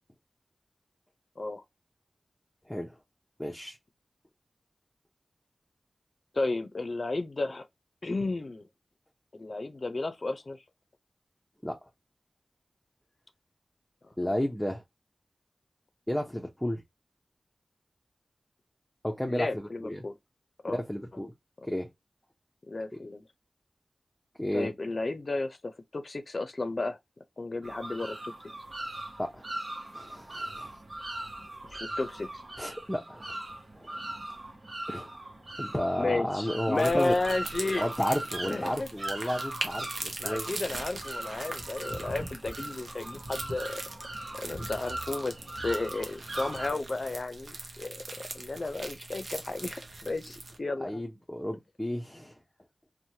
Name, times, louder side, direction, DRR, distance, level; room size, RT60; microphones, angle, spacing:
voice 1, 3.4-3.8 11.6-11.8 14.2-14.8 16.1-16.8 19.0-20.0 20.7-21.3 21.6-21.9 24.4-24.7 29.2-29.5 29.9-30.7 32.6-33.4 33.8-33.9 34.9-35.1 35.6-37.1 37.8-40.5 50.8-52.3, equal, 10° left, 0.6 m, -32 dB
voice 2, 6.3-7.7 8.0-8.7 9.3-10.6 14.0-14.1 19.3-20.2 20.6-20.8 22.7-23.3 24.5-27.0 27.4-28.3 31.7-32.4 36.0-37.9 38.4-38.9 40.2-43.8 44.3-45.3 45.6-48.0 48.3-51.0, left 2 dB, 60° left, 0.5 m, -33 dB
sound 1, 27.6-46.7, right 1 dB, 55° right, 0.9 m, -40 dB
sound 2, 36.8-50.6, right 2 dB, 80° right, 0.6 m, -41 dB
3.0 x 2.1 x 2.7 m
cardioid pair, 45°, 0 cm